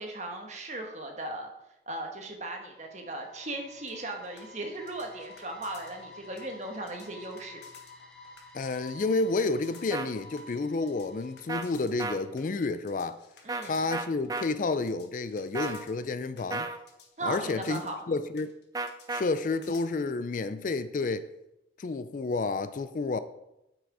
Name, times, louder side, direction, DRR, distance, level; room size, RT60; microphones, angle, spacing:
voice 1, 0.0-1.5 1.9-7.6 13.4-13.9 17.2-18.0, right 2 dB, 40° right, 1.3 m, -37 dB
sound 1, 2.3-12.3, left 2 dB, 5° left, 0.9 m, -52 dB
sound 2, 3.9-19.9, left 6 dB, 65° left, 1.3 m, -56 dB
voice 2, 8.5-13.2 13.6-16.7 17.2-18.5 19.1-21.3 21.8-23.2, left 3 dB, 45° left, 0.4 m, -30 dB
sound 3, 9.9-10.1 11.5-11.6 12.0-12.2 13.5-13.6 13.9-14.5 15.5-15.8 16.5-16.8 18.7-19.2, right 3 dB, 20° right, 0.5 m, -33 dB
8.6 x 6.1 x 4.8 m
head